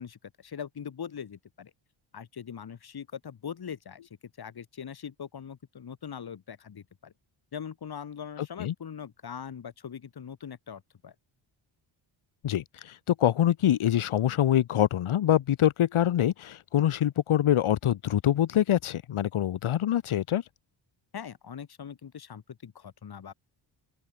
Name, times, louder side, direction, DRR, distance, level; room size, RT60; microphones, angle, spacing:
voice 1, 0.0-1.7 2.1-4.0 4.4-7.1 7.5-11.1 21.1-23.3, left 7 dB, 50° left, 4.1 m, -41 dB
voice 2, 12.4-20.4, left 11 dB, 85° left, 4.1 m, -25 dB
open air
cardioid pair, 125°, 49 cm